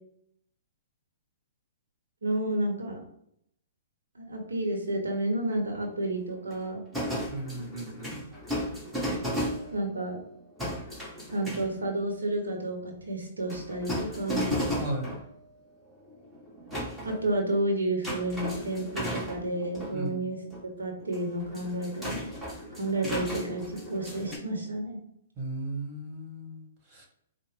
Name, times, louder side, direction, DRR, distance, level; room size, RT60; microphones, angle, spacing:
voice 1, 2.2-3.0 4.1-6.8 9.7-10.2 11.3-14.6 17.0-20.4 20.8-22.3 22.7-25.0, right 1 dB, 85° right, 2 dB, 0.9 m, -31 dB
sound 1, 5.8-5.9 6.3-10.1 10.6-11.9 13.5-15.3 16.0-17.3 18.0-19.9 20.5-20.6 21.0-24.4, equal, 5° right, 1.3 m, -35 dB
voice 2, 7.3-8.2 14.8-15.1 19.9-20.2 25.4-27.1, right 1 dB, 30° right, 1 dB, 1.5 m, -36 dB
4.5 x 2.0 x 3.5 m, 0.73 s
hypercardioid pair, 125°, 0 cm